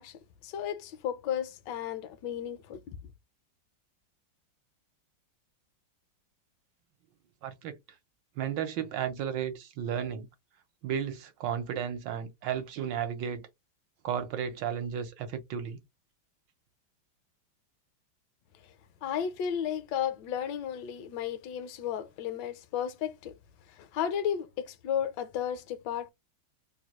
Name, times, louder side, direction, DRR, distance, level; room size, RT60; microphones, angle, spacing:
voice 1, 0.0-3.0 19.0-23.4 23.7-26.1, left 9 dB, 75° left, 1.2 m, -34 dB
voice 2, 7.4-7.8 8.4-10.3 10.8-13.5 14.0-15.8, right 8 dB, 75° right, 1.4 m, -33 dB
3.3 x 2.2 x 3.0 m
omnidirectional pair, 2.1 m